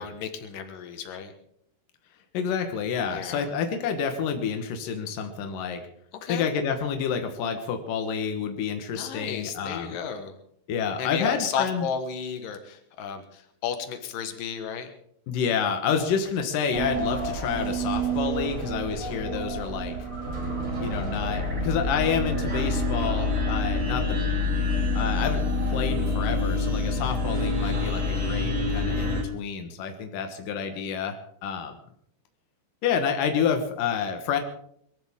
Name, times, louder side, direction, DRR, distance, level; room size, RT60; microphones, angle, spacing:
voice 1, 0.0-1.3 3.1-3.5 6.2-6.5 8.9-10.4 11.0-14.9 18.9-19.3, left 7 dB, 65° left, 7 dB, 2.3 m, -33 dB
voice 2, 2.3-5.8 6.3-9.9 10.7-11.9 15.3-20.0 20.8-24.2 24.9-31.8 32.8-34.4, left 7 dB, 80° left, 6 dB, 1.9 m, -29 dB
sound 1, 16.7-29.2, left 2 dB, 30° right, 1.7 m, -27 dB
22.5 x 15.5 x 3.6 m, 0.69 s
omnidirectional pair, 6.0 m